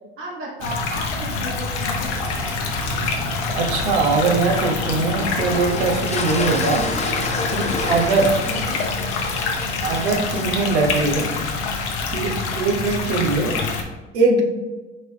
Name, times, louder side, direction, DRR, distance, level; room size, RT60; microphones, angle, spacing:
voice 1, 0.2-2.1 8.4-8.8, right 1 dB, 40° right, -5 dB, 1.4 m, -33 dB
sound 1, 0.6-13.8, left 4 dB, 75° left, 0.9 m, -26 dB
sound 2, 2.1-8.8, equal, 5° right, 1.2 m, -36 dB
voice 2, 3.5-6.9 7.5-8.4 9.8-11.3 12.1-13.6 14.1-14.4, right 3 dB, 80° right, 3 dB, 0.9 m, -21 dB
sound 3, 5.3-12.6, left 3 dB, 20° left, 0.6 m, -31 dB
5.1 x 3.1 x 3.4 m, 1.2 s
hypercardioid pair, 80°, 34 cm